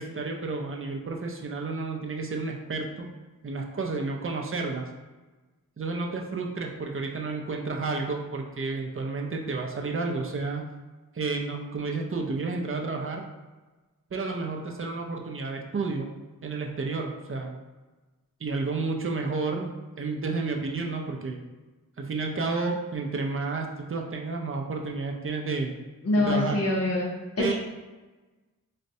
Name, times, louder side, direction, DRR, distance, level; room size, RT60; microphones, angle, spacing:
voice 1, 0.0-3.1 3.4-4.9 5.8-10.6 11.1-13.2 14.1-16.1 16.4-17.6 18.4-19.7 20.0-21.4 22.0-25.7 26.2-26.6 27.4-27.5, right 3 dB, 40° right, 1 dB, 0.5 m, -31 dB
voice 2, 26.0-27.1 27.4-27.5, left 2 dB, 45° left, -3 dB, 0.6 m, -24 dB
4.1 x 2.1 x 2.7 m, 1.2 s
wide cardioid pair, 60°, 35 cm